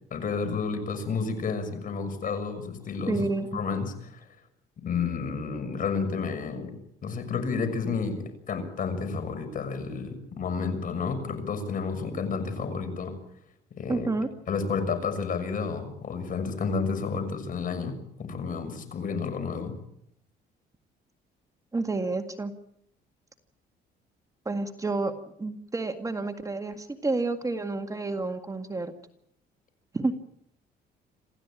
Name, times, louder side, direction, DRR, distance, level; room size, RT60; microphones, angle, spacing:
voice 1, 0.1-4.3 4.8-6.7 7.0-13.1 13.8-14.1 14.5-19.7, left 5 dB, 50° left, 8 dB, 6.5 m, -31 dB
voice 2, 3.1-3.6 13.9-14.3 21.7-22.5 24.5-25.1 25.4-28.9 29.9-30.1, right 3 dB, 20° right, 6 dB, 1.9 m, -29 dB
27.5 x 15.5 x 9.0 m, 0.74 s
cardioid pair, 105°, 18 cm